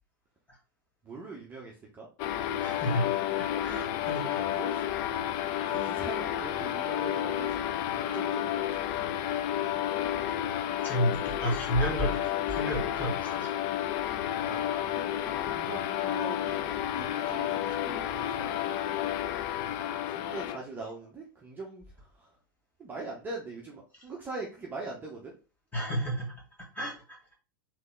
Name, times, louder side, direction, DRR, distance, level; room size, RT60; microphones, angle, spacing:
voice 1, 1.0-2.1 4.5-4.8 5.6-7.5 7.9-9.1 14.4-18.7 20.1-21.8 22.2-22.3 22.8-25.3, right 3 dB, 15° right, -2 dB, 0.8 m, -42 dB
sound 1, 2.2-20.6, left 11 dB, 40° left, 0.4 m, -31 dB
voice 2, 2.6-3.1 3.6-4.5 5.7-5.8 10.8-13.5 17.7-17.8 25.7-26.3 26.7-26.9, equal, 15° left, -3 dB, 1.8 m, -31 dB
3.8 x 3.1 x 3.7 m, 0.35 s
figure-of-eight pair, 90°, 12 cm